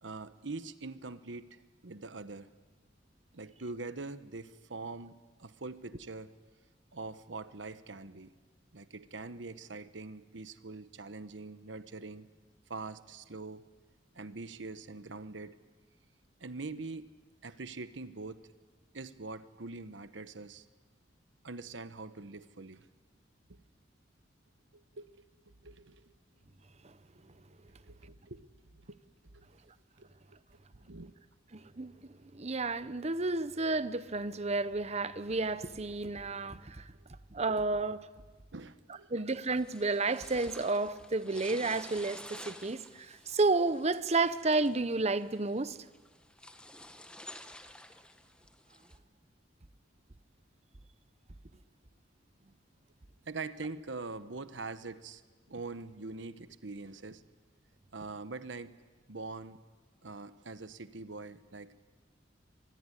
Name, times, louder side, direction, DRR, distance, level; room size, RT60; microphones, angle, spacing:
voice 1, 0.0-2.5 3.3-6.3 6.9-8.3 8.7-12.3 12.7-13.7 14.1-15.5 16.4-17.1 17.4-18.5 18.9-20.6 21.4-22.9 23.5-23.6 24.7-25.2 25.6-26.1 27.8-28.5 28.9-29.0 29.3-29.5 30.0-30.4 30.7-31.1 36.9-37.1 38.5-39.1 53.3-55.2 55.5-57.2 57.9-58.7 59.1-59.6 60.0-61.8, right 3 dB, 80° right, 1.1 m, -43 dB
voice 2, 31.5-31.9 32.3-36.8 37.3-38.0 39.1-45.8, right 3 dB, 35° right, 0.9 m, -31 dB
sound 1, 39.3-49.0, left 1 dB, 5° left, 1.4 m, -51 dB
25.0 x 22.0 x 9.9 m
head